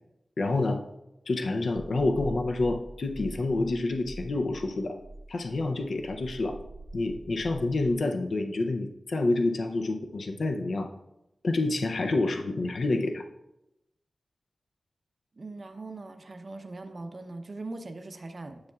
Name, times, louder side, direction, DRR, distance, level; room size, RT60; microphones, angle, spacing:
voice 1, 0.4-0.8 1.3-4.9 5.3-6.6 6.9-10.9 11.4-13.2, left 2 dB, 70° left, 5 dB, 0.6 m, -28 dB
sound 1, 1.7-8.0, right 2 dB, 80° right, 1.0 m, -44 dB
voice 2, 15.4-18.6, right 2 dB, 45° right, 6 dB, 0.6 m, -40 dB
9.5 x 7.1 x 2.4 m, 0.89 s
wide cardioid pair, 100°, 0 cm